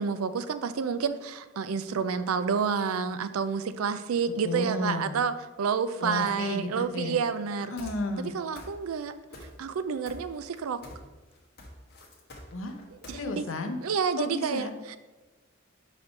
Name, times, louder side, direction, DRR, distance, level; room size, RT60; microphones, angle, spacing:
voice 1, 0.0-7.7 8.2-9.2 9.6-10.8 12.9-13.4 13.8-15.0, right 6 dB, 90° right, 12 dB, 0.4 m, -29 dB
voice 2, 4.4-5.1 6.0-7.2 7.7-8.3 12.5-12.7 13.1-13.8 14.2-14.7, left 2 dB, 70° left, 5 dB, 0.8 m, -32 dB
sound 1, 7.8-8.3 8.6-9.0 9.3-9.8 10.1-11.1 11.3-13.2, left 1 dB, 50° left, 1.4 m, -46 dB
4.9 x 4.1 x 5.8 m, 1.2 s
head